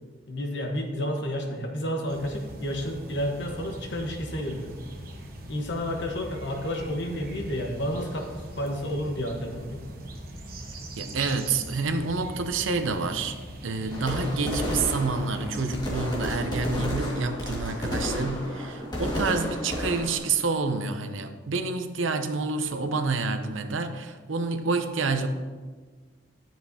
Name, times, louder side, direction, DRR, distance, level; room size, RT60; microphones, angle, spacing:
voice 1, 0.3-4.7 5.5-9.9, equal, 65° left, 2 dB, 1.2 m, -31 dB
sound 1, 2.1-16.4, right 1 dB, 50° right, 1.0 m, -41 dB
voice 2, 11.0-13.3 13.6-25.3, right 4 dB, 90° right, 8 dB, 0.7 m, -28 dB
sound 2, 13.9-20.2, left 1 dB, 20° left, 1.9 m, -31 dB
10.5 x 7.5 x 2.8 m, 1.4 s
head